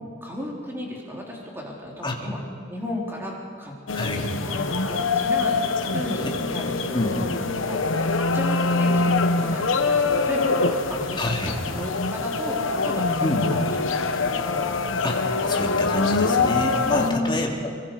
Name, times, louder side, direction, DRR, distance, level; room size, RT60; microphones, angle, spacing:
voice 1, 0.2-2.4 2.7-3.7 4.0-7.9 8.3-13.9 14.2-14.6 16.9-17.5, left 1 dB, 10° right, -3 dB, 4.3 m, -34 dB
sound 1, 3.9-17.1, left 3 dB, 90° left, 1.2 m, -24 dB
voice 2, 11.2-11.5 13.2-13.4 15.0-15.1 15.5-17.7, left 1 dB, 25° left, 0 dB, 2.6 m, -27 dB
25.5 x 23.5 x 5.1 m, 2.2 s
head